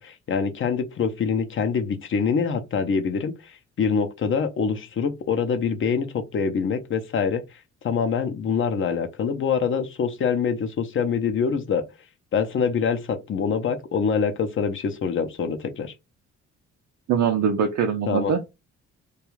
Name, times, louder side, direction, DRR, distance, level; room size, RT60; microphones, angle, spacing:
voice 1, 0.0-7.4 7.8-11.8 12.3-15.9 18.1-18.3, left 6 dB, 45° left, 0.6 m, -25 dB
voice 2, 17.1-18.4, right 7 dB, 60° right, 0.5 m, -22 dB
2.3 x 2.3 x 3.0 m
cardioid pair, 90°, 30 cm